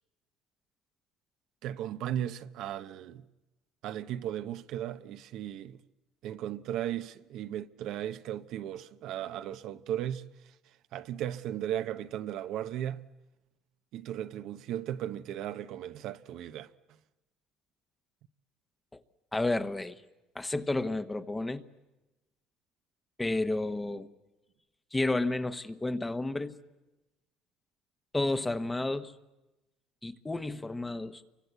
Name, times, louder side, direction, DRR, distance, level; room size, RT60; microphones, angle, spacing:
voice 1, 1.6-3.2 3.8-5.8 6.2-10.3 10.9-13.1 13.9-16.7, right 11 dB, 65° right, 0.9 m, -36 dB
voice 2, 19.3-19.9 20.3-21.6 23.2-24.1 24.9-26.6 28.1-29.1 30.0-31.2, left 2 dB, 15° left, 1.1 m, -31 dB
29.5 x 24.0 x 8.2 m
cardioid pair, 110°, 0 cm